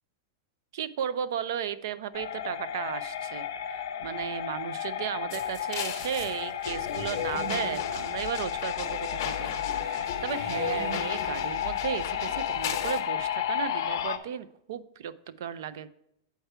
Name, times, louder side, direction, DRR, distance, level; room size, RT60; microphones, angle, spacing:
voice 1, 0.7-15.9, right 9 dB, 55° right, 15 dB, 0.4 m, -35 dB
sound 1, 2.1-14.2, left 10 dB, 70° left, 0.6 m, -33 dB
sound 2, 5.3-13.0, left 7 dB, 45° left, 1.0 m, -37 dB
8.0 x 4.6 x 5.5 m, 0.79 s
supercardioid pair, 180°, 2 cm